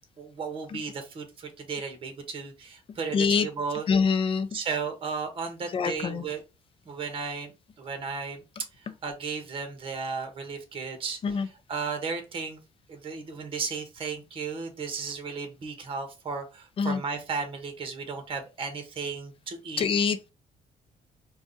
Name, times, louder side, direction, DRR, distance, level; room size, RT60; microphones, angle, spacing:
voice 1, 0.2-3.9 4.5-6.4 6.8-7.5 7.8-8.4 8.8-12.6 12.9-19.8, right 5 dB, 40° right, 1.3 m, -34 dB
voice 2, 3.1-3.5 3.9-4.5 5.7-6.2 11.2-11.5 16.8-17.0 19.8-20.3, left 5 dB, 40° left, 0.6 m, -25 dB
4.7 x 2.4 x 4.0 m
cardioid pair, 140°, 13 cm